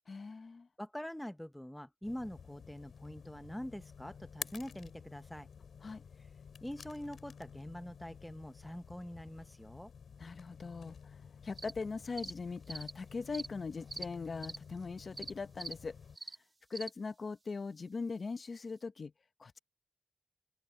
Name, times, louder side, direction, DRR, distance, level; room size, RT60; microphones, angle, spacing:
voice 1, 0.1-0.7 5.8-6.0 10.2-16.0 16.7-19.1 19.4-19.6, left 4 dB, 60° left, 0.9 m, -41 dB
voice 2, 0.8-5.5 6.6-9.9, equal, 5° left, 0.9 m, -44 dB
sound 1, 2.0-16.2, left 6 dB, 85° left, 6.3 m, -52 dB
sound 2, 11.6-11.7 12.2-12.3 12.7-12.9 13.3-13.5 13.9-14.1 14.4-14.6 15.2-15.3 15.6-15.7 16.2-16.4 16.7-16.9, right 3 dB, 40° right, 2.3 m, -43 dB
open air
cardioid pair, 65°, 0 cm